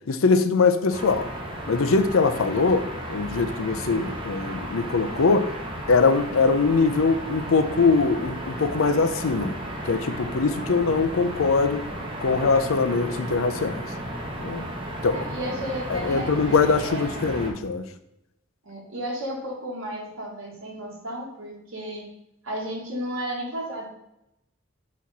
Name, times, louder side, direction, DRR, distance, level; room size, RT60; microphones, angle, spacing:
voice 1, 0.1-1.3 1.7-5.5 5.9-9.5 9.9-11.8 12.2-13.8 14.4-14.7 15.0-15.2 15.9-17.8, left 4 dB, 90° left, 10 dB, 0.6 m, -22 dB
sound 1, 0.9-17.5, right 1 dB, 25° right, 1.1 m, -34 dB
voice 2, 15.1-17.1 18.6-22.1 22.4-23.8, right 1 dB, 70° right, -4 dB, 1.6 m, -34 dB
6.2 x 4.2 x 4.1 m, 0.83 s
head